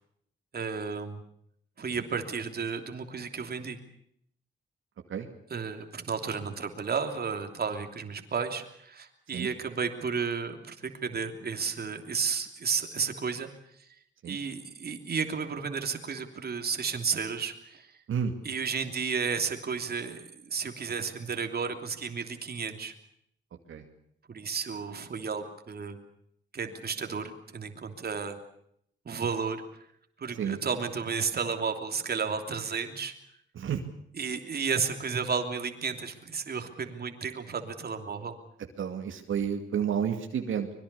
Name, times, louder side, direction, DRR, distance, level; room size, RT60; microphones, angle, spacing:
voice 1, 0.5-1.2 1.8-3.8 5.5-13.5 13.8-13.9 14.3-17.9 18.4-22.9 24.3-26.0 26.5-28.4 29.0-29.6 30.2-33.1 34.1-38.3, right 5 dB, 50° right, 6 dB, 3.1 m, -33 dB
voice 2, 38.8-40.8, right 8 dB, 80° right, 4 dB, 2.4 m, -31 dB
25.0 x 22.0 x 6.9 m, 0.70 s
cardioid pair, 110°, 20 cm